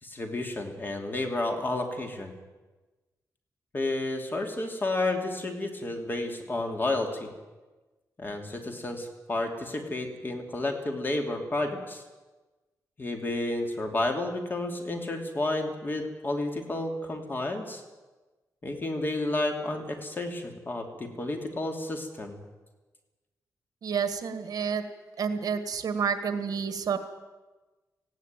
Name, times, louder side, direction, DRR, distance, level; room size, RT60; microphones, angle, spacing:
voice 1, 0.0-2.3 3.7-7.3 8.2-12.0 13.0-17.8 18.6-22.4, left 2 dB, 30° left, 4 dB, 2.9 m, -31 dB
voice 2, 23.8-24.8 25.2-27.0, right 6 dB, 65° right, 9 dB, 1.6 m, -29 dB
19.0 x 16.0 x 9.1 m, 1.2 s
wide cardioid pair, 140°, 7 cm